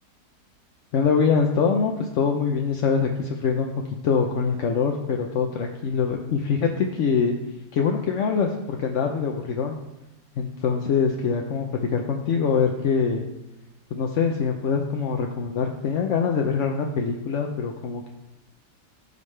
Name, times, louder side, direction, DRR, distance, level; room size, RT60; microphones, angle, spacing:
voice 1, 0.9-3.7 4.0-7.3 7.7-9.8 10.4-13.3 13.9-18.1, left 5 dB, 60° left, 2 dB, 0.9 m, -24 dB
14.5 x 5.4 x 3.3 m, 0.96 s
omnidirectional pair, 1.8 m